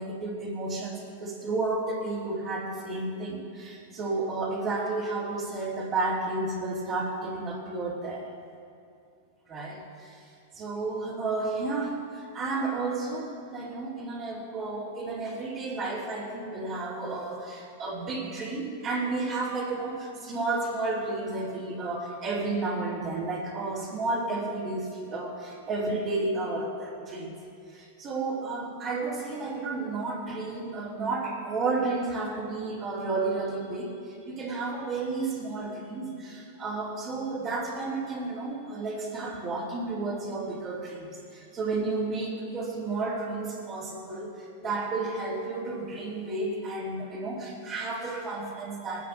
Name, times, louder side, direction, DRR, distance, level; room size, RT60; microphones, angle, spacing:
voice 1, 0.0-8.2 9.5-10.2 10.5-27.3 27.7-49.1, right 3 dB, 35° right, -7 dB, 2.9 m, -32 dB
19.5 x 10.0 x 4.0 m, 2.5 s
hypercardioid pair, 120°, 0 cm